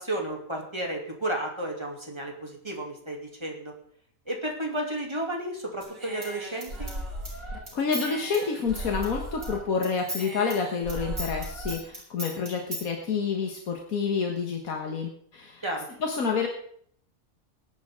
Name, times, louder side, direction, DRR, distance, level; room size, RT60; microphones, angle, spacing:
voice 1, 0.0-3.7 4.3-6.9 15.6-15.9, right 1 dB, 20° right, 0 dB, 2.9 m, -32 dB
Human voice / Scissors, 5.8-9.6 9.8-12.9, right 1 dB, 75° right, 5.4 m, -36 dB
voice 2, 7.4-15.6 16.0-16.5, left 5 dB, 85° left, 2 dB, 1.9 m, -29 dB
19.0 x 10.5 x 3.7 m, 0.62 s
omnidirectional pair, 1.4 m